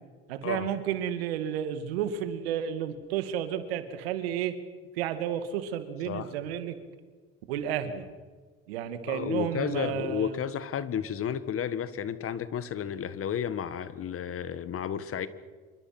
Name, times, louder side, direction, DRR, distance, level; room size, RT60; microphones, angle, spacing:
voice 1, 0.3-4.5 4.9-6.8 7.5-8.1 8.7-10.4, right 9 dB, 85° right, 9 dB, 2.3 m, -32 dB
voice 2, 9.1-15.3, left 8 dB, 50° left, 14 dB, 1.7 m, -32 dB
27.0 x 23.5 x 6.1 m, 1.4 s
hypercardioid pair, 70°, 30 cm